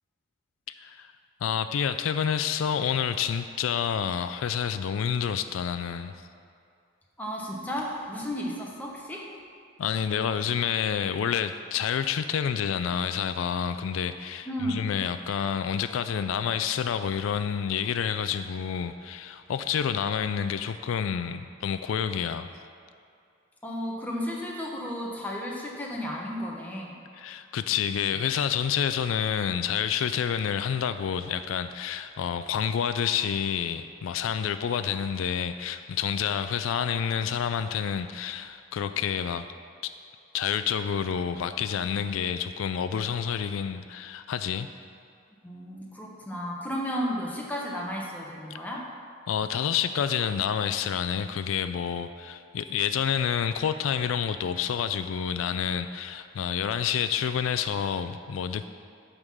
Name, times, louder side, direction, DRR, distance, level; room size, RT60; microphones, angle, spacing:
voice 1, 1.4-6.1 9.8-22.5 27.2-39.5 39.8-39.9 40.3-44.7 49.3-58.7, left 8 dB, 80° left, 10 dB, 0.3 m, -28 dB
voice 2, 7.2-9.3 14.4-14.9 23.6-26.9 45.4-48.9, equal, 10° left, -3 dB, 1.0 m, -33 dB
9.8 x 3.7 x 6.3 m, 2.4 s
head